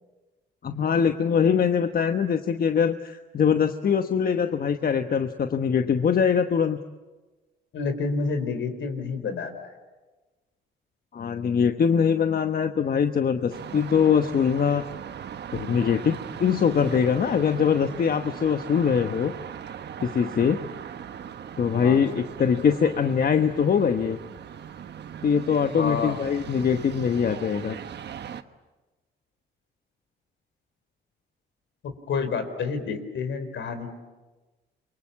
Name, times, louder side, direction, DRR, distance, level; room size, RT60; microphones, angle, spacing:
voice 1, 0.6-6.8 11.1-14.8 15.5-19.3 20.0-20.6 21.6-24.2 25.2-27.8, left 7 dB, 50° left, 7 dB, 1.2 m, -23 dB
voice 2, 7.7-9.8 21.8-22.2 25.8-26.2 31.8-33.9, left 4 dB, 70° left, 9 dB, 4.2 m, -29 dB
sound 1, 13.5-28.4, right 8 dB, 60° right, 1.4 m, -39 dB
28.5 x 23.5 x 8.5 m, 1.2 s
cardioid pair, 90°, 20 cm